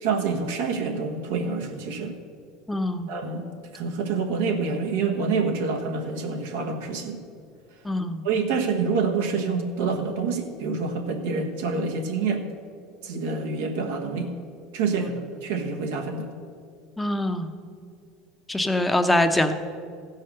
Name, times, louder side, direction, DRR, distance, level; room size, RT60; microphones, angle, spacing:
voice 1, 0.0-2.2 3.1-3.5 3.7-7.2 8.2-12.5 13.0-14.3 14.7-16.3, right 4 dB, 85° right, 2 dB, 1.3 m, -27 dB
voice 2, 2.7-3.1 7.8-8.2 15.0-15.1 17.0-17.5 18.5-19.5, left 1 dB, 10° left, 7 dB, 0.8 m, -23 dB
15.0 x 5.6 x 6.6 m, 2.3 s
supercardioid pair, 110°, 0 cm